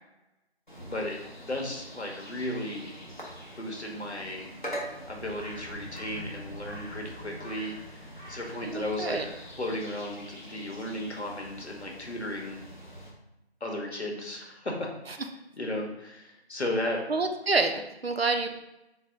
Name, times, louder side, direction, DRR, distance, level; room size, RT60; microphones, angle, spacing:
sound 1, 0.7-13.1, equal, 45° left, 0.9 m, -43 dB
voice 1, 0.8-2.9 3.6-4.5 5.1-9.2 9.6-12.6 13.6-15.2 15.6-17.1, left 1 dB, 85° left, 0 dB, 1.1 m, -35 dB
voice 2, 8.7-9.2 17.1-17.8 18.0-18.5, right 3 dB, 65° right, 6 dB, 0.5 m, -27 dB
4.0 x 2.2 x 3.7 m, 0.94 s
figure-of-eight pair, 175°, 33 cm